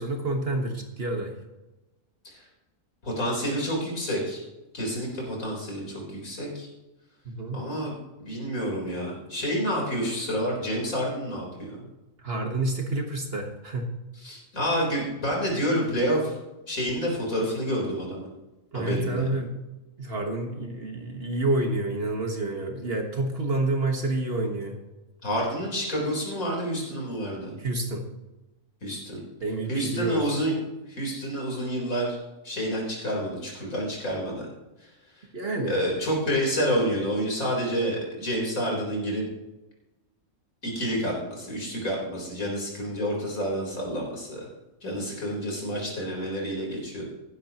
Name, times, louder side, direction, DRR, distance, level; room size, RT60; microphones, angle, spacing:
voice 1, 0.0-1.3 7.3-7.6 12.2-13.9 18.7-19.6 20.0-24.8 27.6-28.1 29.4-30.3 35.3-35.8, right 2 dB, 45° right, 3 dB, 1.6 m, -28 dB
voice 2, 3.0-4.4 4.7-6.7 7.5-7.9 8.2-11.8 14.2-16.3 16.7-18.3 18.7-19.3 25.2-27.5 28.8-29.2 29.7-30.5 30.9-32.2 32.4-34.5 34.8-34.9 35.2-35.3 35.7-39.2 40.6-44.4 44.8-47.1, equal, 80° left, -2 dB, 4.4 m, -29 dB
16.0 x 11.0 x 3.0 m, 1.0 s
omnidirectional pair, 1.4 m